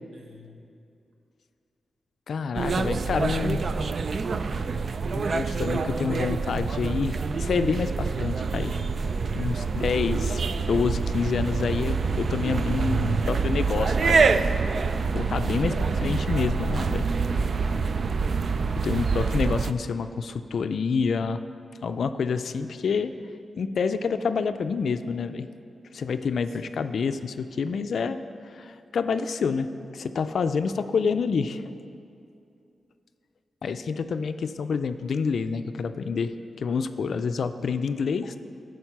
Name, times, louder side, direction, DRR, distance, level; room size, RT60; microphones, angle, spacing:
voice 1, 0.1-0.7 3.0-4.0 13.1-14.1 15.5-16.1 22.4-22.8 26.5-26.8, right 1 dB, 85° right, -1 dB, 1.4 m, -46 dB
voice 2, 2.3-3.6 5.1-8.7 9.3-14.2 15.1-15.7 16.0-17.1 18.8-21.4 21.8-23.1 23.6-25.5 25.9-28.2 28.5-31.6 33.6-38.4, left 5 dB, 75° left, 10 dB, 0.4 m, -28 dB
sound 1, 2.5-19.7, right 4 dB, 55° right, 0.3 m, -26 dB
12.5 x 4.8 x 5.9 m, 2.5 s
wide cardioid pair, 115°, 0 cm